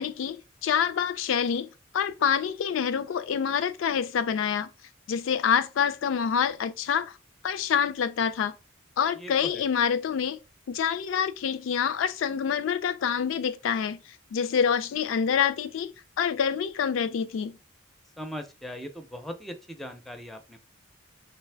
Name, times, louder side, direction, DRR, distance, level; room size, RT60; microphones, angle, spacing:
voice 1, 0.0-4.7 5.1-7.2 7.4-8.5 9.0-10.4 10.7-14.0 14.3-17.6, left 7 dB, 80° left, 0.3 m, -27 dB
voice 2, 9.2-9.6 18.2-20.6, equal, ahead, 0.4 m, -39 dB
3.3 x 3.1 x 3.3 m
head